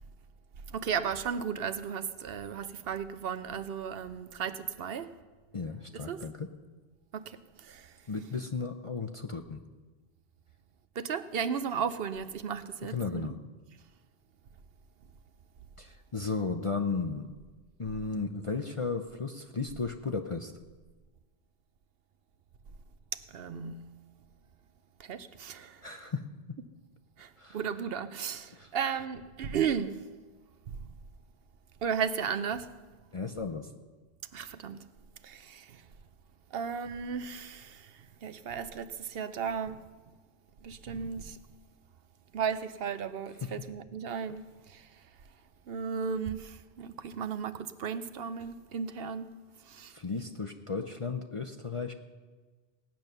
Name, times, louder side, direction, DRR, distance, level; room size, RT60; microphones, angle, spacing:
voice 1, 0.7-5.1 5.9-6.2 7.1-7.2 11.0-13.3 23.3-23.8 25.1-25.7 27.2-27.3 27.5-29.9 31.8-32.7 34.3-34.8 35.2-35.6 36.5-37.7 38.2-39.8 40.6-41.4 42.3-44.4 45.7-46.5 46.8-49.3 49.8-49.9, right 7 dB, 70° right, 0.9 m, -34 dB
voice 2, 5.5-6.5 8.1-9.6 12.8-13.4 15.8-17.3 17.8-20.5 25.8-26.2 27.4-27.6 28.5-28.7 33.1-33.7 43.4-43.5 49.9-51.9, left 4 dB, 35° left, 0.6 m, -34 dB
17.5 x 8.9 x 6.6 m
omnidirectional pair, 1.1 m